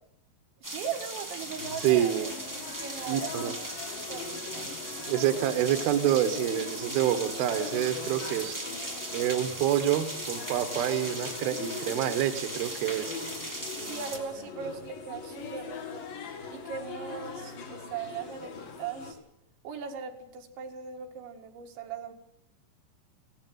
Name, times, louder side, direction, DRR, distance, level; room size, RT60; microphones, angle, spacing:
sound 1, 0.6-14.2, right 1 dB, 10° right, 0.8 m, -38 dB
voice 1, 0.6-2.3 2.8-3.5 3.8-4.7 13.8-16.1 16.5-19.2 19.6-22.1, right 7 dB, 85° right, 3 dB, 4.2 m, -39 dB
sound 2, 1.6-19.1, left 5 dB, 55° left, 3.8 m, -41 dB
voice 2, 1.8-2.3 3.1-3.5 5.1-8.6 9.1-13.1, right 11 dB, 70° right, 10 dB, 2.9 m, -27 dB
17.5 x 16.0 x 9.2 m, 0.76 s
omnidirectional pair, 5.1 m